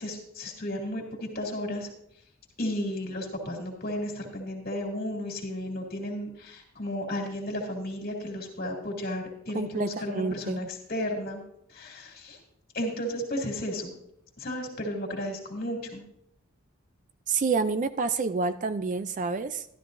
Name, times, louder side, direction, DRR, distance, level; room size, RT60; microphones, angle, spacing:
voice 1, 0.0-1.9 2.6-11.4 11.7-12.4 12.7-13.9 14.4-16.0, left 1 dB, 45° left, 1 dB, 2.4 m, -33 dB
voice 2, 9.5-10.7 17.3-19.7, right 4 dB, 35° right, 12 dB, 0.4 m, -28 dB
13.0 x 12.0 x 2.6 m, 0.75 s
head